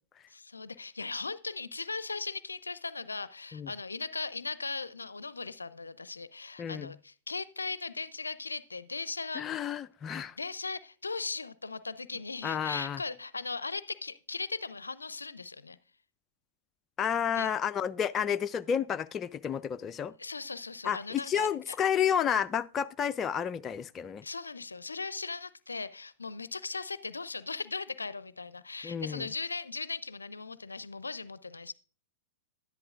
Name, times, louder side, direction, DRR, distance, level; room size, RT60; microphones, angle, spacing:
voice 1, 0.3-9.4 10.4-15.8 17.3-17.5 20.2-21.8 24.2-31.7, left 4 dB, 90° left, 0.4 m, -38 dB
voice 2, 6.6-6.9 9.4-10.3 12.4-13.0 17.0-20.1 20.8-24.2 28.8-29.3, left 8 dB, 25° left, 0.3 m, -31 dB
10.5 x 10.5 x 2.4 m
figure-of-eight pair, 105°, 0 cm